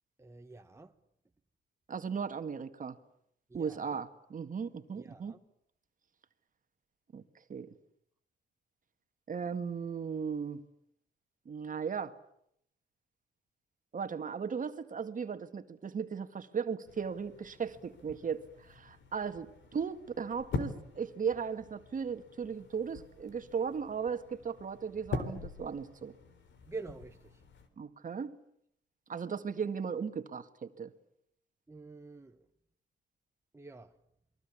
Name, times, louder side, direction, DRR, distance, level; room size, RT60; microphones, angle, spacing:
voice 1, 0.2-0.9 3.5-4.0 4.9-5.4 26.6-27.4 31.7-32.5 33.5-34.0, right 3 dB, 15° right, 1.3 m, -47 dB
voice 2, 1.9-3.0 3.5-5.3 7.1-7.2 7.5-7.7 9.3-10.6 11.5-12.1 13.9-26.1 27.8-28.3 29.1-30.9, right 6 dB, 40° right, 2.0 m, -37 dB
sound 1, 16.9-27.7, left 4 dB, 70° left, 3.9 m, -44 dB
28.5 x 22.5 x 8.6 m
cardioid pair, 90°, 20 cm